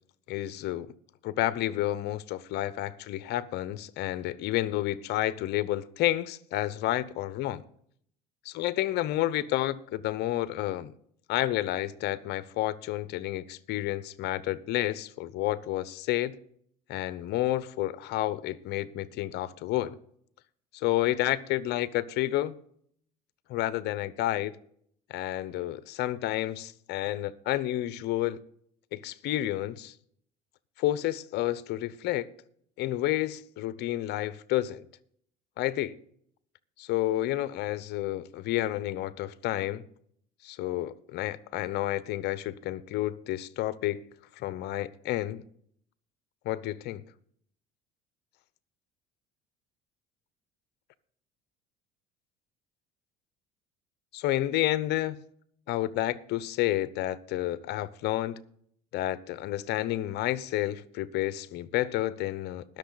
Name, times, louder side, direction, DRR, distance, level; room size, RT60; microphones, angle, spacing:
voice 1, 0.3-0.9 1.2-7.6 8.4-10.9 11.3-16.4 16.9-20.0 20.7-22.5 23.5-24.5 25.1-28.4 28.9-29.9 30.8-32.3 32.8-34.8 35.6-36.0 36.8-39.8 40.4-44.0 44.4-45.4 46.4-47.0 54.1-55.2 55.7-58.4 58.9-62.8, left 15 dB, 65° left, 0.9 m, -30 dB
20.0 x 6.8 x 4.0 m
supercardioid pair, 80°, 19 cm